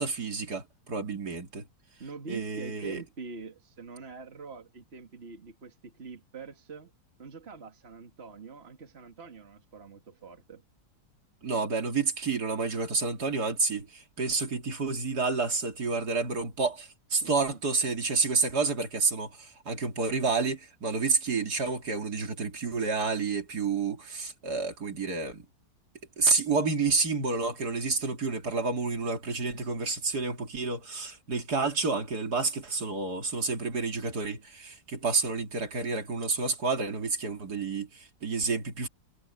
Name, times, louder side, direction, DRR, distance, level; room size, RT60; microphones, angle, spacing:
voice 1, 0.0-1.6 2.3-3.0 11.4-25.4 26.2-38.9, right 4 dB, 60° right, 3.1 m, -29 dB
voice 2, 2.0-6.9 7.2-10.6 17.2-17.6, right 4 dB, 35° right, 2.2 m, -45 dB
omnidirectional pair, 1.9 m